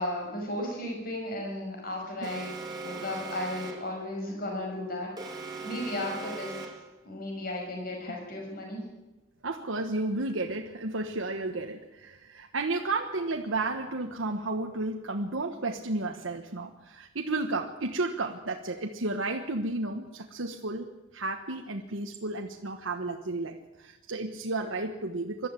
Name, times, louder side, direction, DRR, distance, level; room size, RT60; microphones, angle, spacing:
voice 1, 0.0-5.1 5.6-6.7 7.0-8.8, left 1 dB, 50° left, 1 dB, 5.9 m, -35 dB
Alarm, 2.2-4.0 5.2-7.0, right 3 dB, 20° right, 2.5 m, -39 dB
voice 2, 9.4-20.9 21.1-25.5, right 2 dB, 90° right, 3 dB, 1.3 m, -32 dB
22.0 x 13.0 x 9.0 m, 1.0 s
head